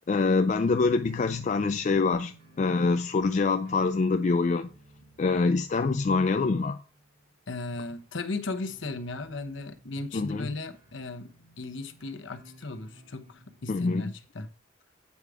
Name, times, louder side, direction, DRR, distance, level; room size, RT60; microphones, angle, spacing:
voice 1, 0.1-4.7 5.2-6.8 10.1-10.5 13.7-14.0, left 4 dB, 35° left, 0.3 m, -25 dB
sound 1, 0.6-14.2, right 1 dB, 45° right, 2.4 m, -56 dB
voice 2, 7.5-14.5, left 2 dB, 65° left, 0.9 m, -36 dB
8.3 x 4.8 x 4.9 m
head